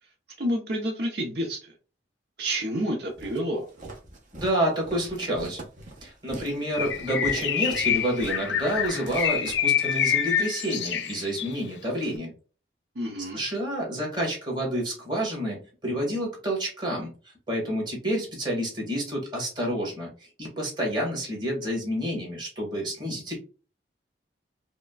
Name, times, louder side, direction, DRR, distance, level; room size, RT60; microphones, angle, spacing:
voice 1, 0.4-1.7 2.4-3.7 12.9-13.4, equal, 65° right, 1 dB, 0.8 m, -29 dB
Walk footsteps, 3.2-10.1, right 2 dB, 50° right, 1.1 m, -43 dB
voice 2, 4.3-5.6 6.0-12.3 13.2-17.1 17.5-20.1 20.4-23.4, equal, 25° right, -2 dB, 1.8 m, -29 dB
Bird, 6.7-11.6, left 9 dB, 85° left, 0.5 m, -27 dB
4.9 x 2.2 x 2.4 m, 0.36 s
head